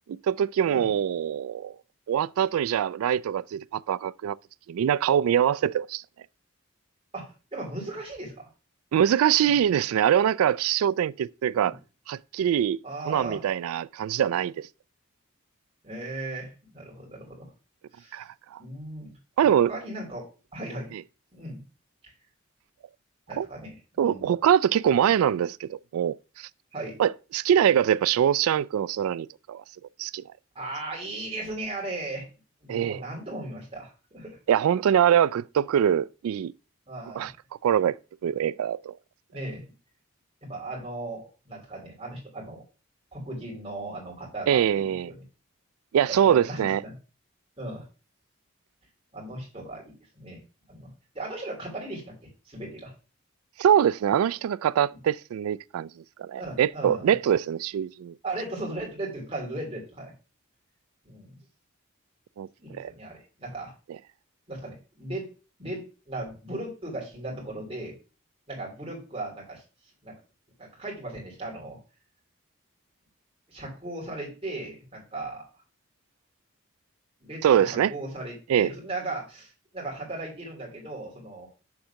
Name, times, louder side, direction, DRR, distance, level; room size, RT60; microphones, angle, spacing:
voice 1, 0.1-1.8 2.1-4.4 4.7-6.0 8.9-11.7 12.1-12.8 13.0-14.7 18.1-18.6 19.4-19.7 20.9-21.0 23.4-23.5 24.0-26.5 27.0-29.6 30.0-30.2 32.7-33.0 34.5-36.5 37.2-37.3 37.6-38.9 44.5-45.1 45.9-46.8 53.6-55.9 56.2-58.1 62.4-62.5 62.8-62.9 77.4-77.9 78.5-78.7, right 9 dB, 90° right, 0.3 m, -23 dB
voice 2, 7.1-8.5 9.4-9.6 11.5-11.7 12.8-13.4 15.8-17.5 17.9-18.2 18.6-19.1 19.7-20.2 20.5-20.9 21.3-21.6 23.3-24.3 26.7-27.0 30.5-32.3 32.6-34.4 36.9-37.3 39.3-39.6 40.4-42.6 43.1-45.1 46.1-46.9 47.6-47.8 49.1-50.4 50.7-52.1 52.4-52.9 56.3-57.1 58.2-60.1 61.0-61.4 62.6-63.7 64.5-65.3 65.6-68.0 68.5-69.6 70.0-70.2 70.6-71.8 73.5-75.5 77.2-81.5, right 2 dB, 25° right, 3.0 m, -37 dB
7.1 x 3.7 x 5.7 m
head